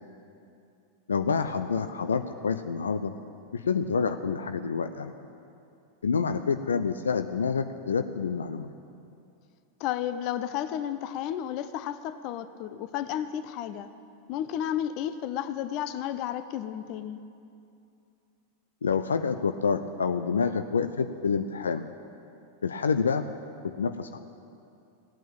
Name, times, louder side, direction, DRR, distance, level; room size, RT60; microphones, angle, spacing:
voice 1, 1.1-3.1 3.5-5.1 6.0-8.7 18.8-21.9 22.6-23.3 23.6-24.2, left 5 dB, 70° left, 9 dB, 0.5 m, -28 dB
voice 2, 9.8-13.9 14.3-17.2, left 10 dB, 40° left, 12 dB, 0.7 m, -32 dB
16.5 x 9.1 x 8.7 m, 2.6 s
figure-of-eight pair, 90°, 0 cm